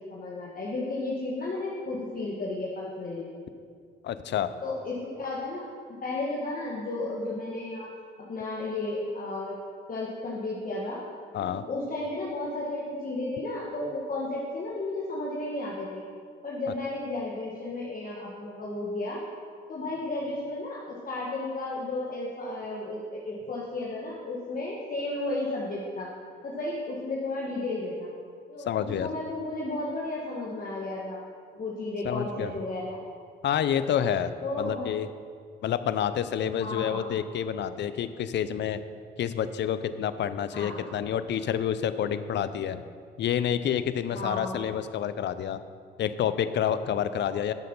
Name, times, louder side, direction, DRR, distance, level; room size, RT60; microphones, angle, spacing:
voice 1, 0.0-3.2 4.6-7.9 8.3-9.6 9.9-11.0 11.4-16.0 16.4-19.2 19.7-26.1 26.4-28.1 28.5-31.3 31.5-33.0 34.4-34.9 36.6-37.1 40.5-40.8 44.1-44.7 47.2-47.4, left 2 dB, 40° left, -4 dB, 1.8 m, -33 dB
voice 2, 4.0-4.5 11.3-11.6 28.7-29.1 32.1-32.5 33.4-34.3 34.6-35.1 35.6-38.8 39.2-42.8 43.2-45.6 46.0-47.5, left 9 dB, 60° left, 13 dB, 0.6 m, -28 dB
10.5 x 6.5 x 5.5 m, 2.1 s
supercardioid pair, 65°, 21 cm